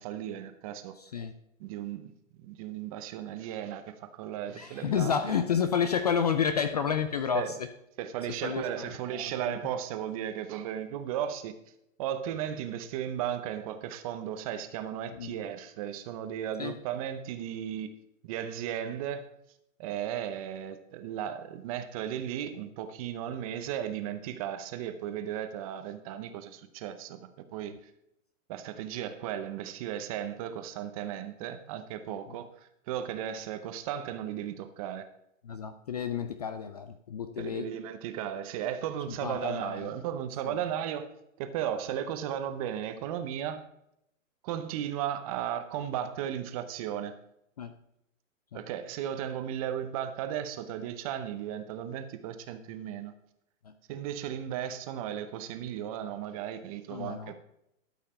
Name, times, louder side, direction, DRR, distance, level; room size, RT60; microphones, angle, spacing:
voice 1, 0.0-0.9 1.6-2.1 2.4-5.4 7.3-7.5 8.0-11.5 12.0-17.9 18.2-19.2 19.8-27.2 27.5-27.8 28.5-35.1 37.4-41.1 41.4-43.6 44.4-47.2 48.5-53.1 53.9-57.3, right 10 dB, 25° right, 10 dB, 0.7 m, -35 dB
voice 2, 0.9-1.3 4.5-7.7 8.4-9.5 15.1-15.4 16.6-16.7 32.1-32.2 35.4-37.7 39.1-39.9 40.5-40.6 47.6-47.7 48.5-48.6 53.6-53.7 56.9-57.3, left 7 dB, 35° left, 10 dB, 0.4 m, -31 dB
12.5 x 5.6 x 4.3 m, 0.81 s
hypercardioid pair, 150°, 40 cm